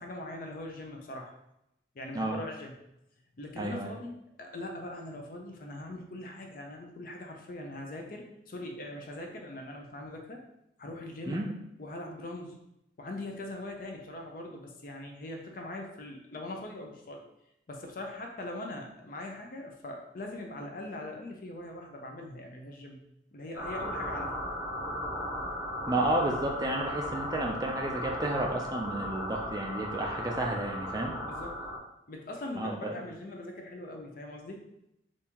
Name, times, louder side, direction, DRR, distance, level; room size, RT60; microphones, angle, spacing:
voice 1, 0.0-1.3 1.9-2.7 3.4-4.1 4.4-10.4 10.8-11.4 11.8-12.6 13.0-17.2 17.7-23.0 23.3-24.4 31.3-31.6 32.1-34.6, left 1 dB, 50° left, 2 dB, 0.5 m, -41 dB
voice 2, 3.6-3.9 11.3-11.5 25.9-31.1 32.6-32.9, right 1 dB, 20° right, 1 dB, 0.4 m, -31 dB
sound 1, 23.5-31.8, equal, 75° left, 1.3 m, -36 dB
3.5 x 2.6 x 2.9 m, 0.81 s
head